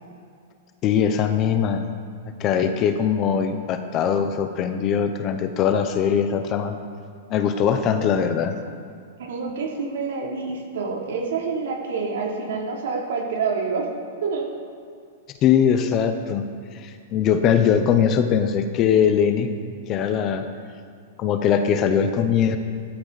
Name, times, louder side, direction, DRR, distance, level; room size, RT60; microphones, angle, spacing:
voice 1, 0.8-1.8 2.4-6.8 7.3-8.6 15.4-16.5 16.7-19.5 19.9-20.5 21.2-22.6, left 8 dB, 25° left, 8 dB, 0.8 m, -21 dB
voice 2, 9.2-13.9 14.2-14.5, right 4 dB, 75° right, -1 dB, 3.2 m, -27 dB
16.0 x 12.0 x 4.2 m, 2.2 s
supercardioid pair, 165°, 0 cm